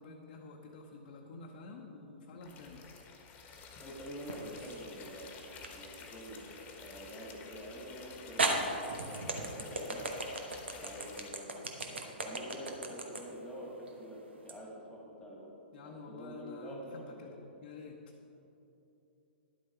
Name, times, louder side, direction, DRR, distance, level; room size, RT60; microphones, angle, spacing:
voice 1, 0.0-2.8 15.7-17.3 17.6-18.0, left 4 dB, 55° left, -1 dB, 0.9 m, -49 dB
sound 1, 2.4-11.3, left 5 dB, 25° left, 1.4 m, -51 dB
voice 2, 3.8-6.5 6.8-8.7 9.1-10.2 10.8-11.7 12.1-15.5 15.8-17.4, equal, 10° left, -3 dB, 2.0 m, -47 dB
sound 2, 4.3-4.9 5.6-5.7 7.6-7.7 8.4-14.6, right 2 dB, 85° right, 1.1 m, -35 dB
10.5 x 7.9 x 4.5 m, 2.9 s
hypercardioid pair, 115°, 6 cm